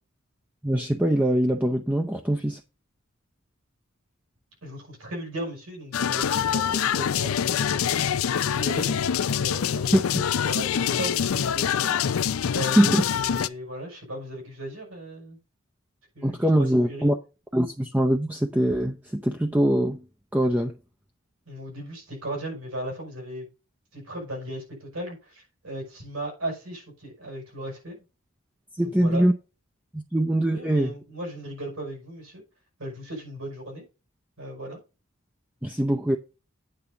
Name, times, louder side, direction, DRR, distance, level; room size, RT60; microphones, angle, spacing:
voice 1, 0.6-2.6 9.9-10.0 12.8-13.0 16.2-17.2 17.5-20.0 20.3-20.7 28.7-29.3 29.9-30.9 35.6-36.2, right 1 dB, 10° right, 0.5 m, -22 dB
voice 2, 4.6-8.9 9.4-10.0 10.4-12.0 12.5-15.4 16.1-17.1 21.5-23.5 23.9-28.0 28.8-29.2 30.5-32.4 32.8-33.9 34.4-34.8, right 1 dB, 85° right, 6.0 m, -36 dB
sound 1, 5.9-13.5, left 8 dB, 90° left, 0.4 m, -25 dB
8.9 x 3.8 x 6.9 m
head